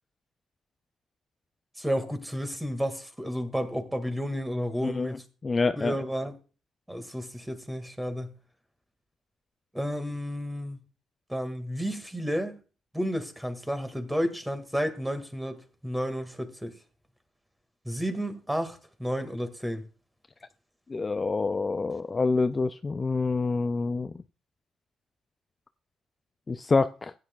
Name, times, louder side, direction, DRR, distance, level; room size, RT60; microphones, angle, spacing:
voice 1, 1.8-5.2 5.8-6.3 6.9-8.3 9.7-10.8 11.3-12.6 12.9-16.7 17.9-19.8, equal, 5° right, 1.9 m, -31 dB
voice 2, 4.8-5.9 20.9-24.1 26.5-27.1, left 3 dB, 30° left, 0.4 m, -27 dB
15.5 x 9.6 x 2.3 m
cardioid pair, 90°, 0 cm